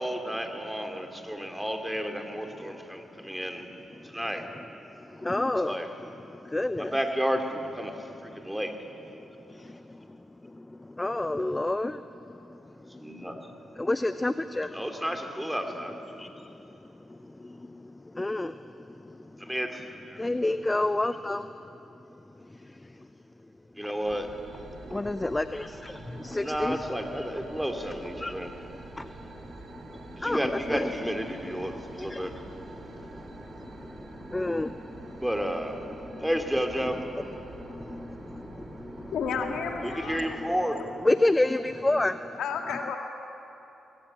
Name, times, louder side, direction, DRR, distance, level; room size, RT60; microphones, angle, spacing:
voice 1, 0.0-3.7 4.0-4.5 5.6-5.9 6.8-8.8 13.0-13.5 14.7-16.0 19.4-20.2 23.8-24.3 26.4-28.5 30.2-32.4 35.2-35.8 36.2-37.1 39.8-40.9, equal, 5° right, 5 dB, 2.7 m, -32 dB
voice 2, 4.0-4.3 4.9-5.8 6.2-6.9 8.3-8.5 9.1-13.4 13.7-14.8 16.1-19.5 20.1-22.0 22.3-23.1 24.8-26.8 28.2-30.9 31.3-35.3 36.0-36.3 37.1-39.5 39.8-40.3 41.0-42.4, left 2 dB, 20° left, 12 dB, 0.6 m, -32 dB
sound 1, 24.0-40.5, right 3 dB, 55° right, 3.0 m, -46 dB
voice 3, 39.1-40.2 42.4-43.0, left 6 dB, 75° left, 4 dB, 1.9 m, -31 dB
21.0 x 17.0 x 8.7 m, 3.0 s
supercardioid pair, 50°, 0 cm